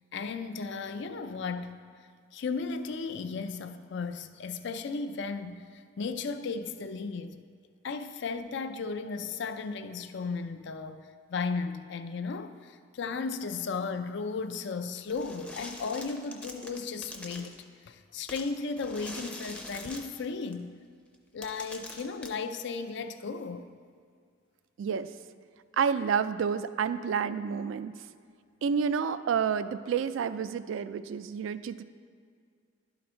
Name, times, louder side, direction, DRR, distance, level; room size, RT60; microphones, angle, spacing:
voice 1, 0.1-1.8 2.3-7.4 7.8-20.7 21.3-23.7, left 4 dB, 65° left, 0.4 m, -35 dB
sound 1, 15.1-17.6 18.3-20.5 21.1-21.2 21.4-22.3, left 1 dB, 5° left, 0.5 m, -44 dB
voice 2, 24.8-25.1 25.7-27.9 28.6-31.8, right 6 dB, 80° right, 0.3 m, -29 dB
11.5 x 4.0 x 4.3 m
head